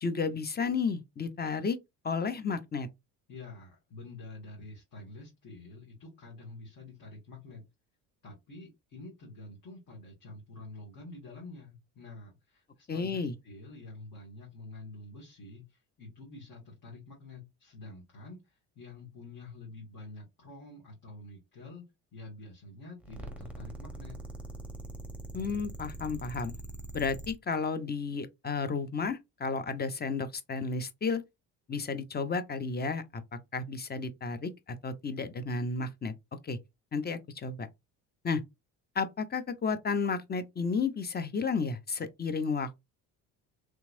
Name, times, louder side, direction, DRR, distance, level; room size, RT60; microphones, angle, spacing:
voice 1, 0.0-1.8 2.0-2.9 12.9-13.3 25.3-26.5 26.9-31.2 31.7-33.2 33.5-34.5 34.8-36.1 36.4-36.6 36.9-37.7 38.2-38.4 39.0-42.7, left 5 dB, 25° left, 0.6 m, -32 dB
voice 2, 3.3-7.7 8.2-21.8 22.1-24.2, left 2 dB, 50° left, 1.8 m, -48 dB
sound 1, 23.0-27.3, right 1 dB, 5° right, 1.0 m, -42 dB
3.5 x 2.9 x 2.6 m
supercardioid pair, 70°, 42 cm